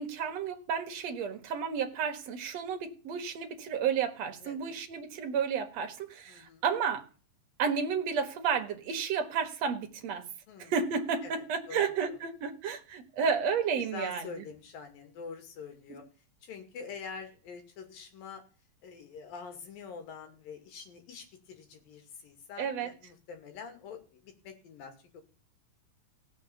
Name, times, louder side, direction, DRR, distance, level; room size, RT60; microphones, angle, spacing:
voice 1, 0.0-7.1 7.6-10.2 10.6-14.4 15.9-16.0 22.6-22.9, right 6 dB, 55° right, 5 dB, 2.5 m, -32 dB
voice 2, 4.4-4.8 6.3-6.6 10.5-10.7 11.2-11.3 11.7-12.2 13.8-16.0 16.4-18.4 18.8-25.2, left 5 dB, 75° left, 4 dB, 4.1 m, -45 dB
17.0 x 6.9 x 7.0 m, 0.37 s
omnidirectional pair, 4.1 m